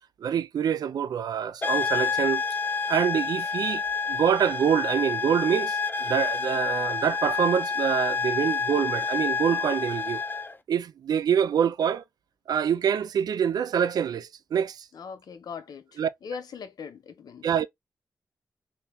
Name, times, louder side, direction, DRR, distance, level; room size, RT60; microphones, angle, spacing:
voice 1, 0.2-2.4 2.9-3.8 4.1-10.2 10.7-12.0 12.5-14.9 16.0-16.1 17.4-17.7, right 8 dB, 85° right, 0.4 m, -25 dB
sound 1, 1.6-10.5, left 5 dB, 30° left, 0.5 m, -28 dB
voice 2, 14.9-17.5, left 6 dB, 85° left, 0.7 m, -40 dB
2.8 x 2.7 x 3.4 m
cardioid pair, 75°, 7 cm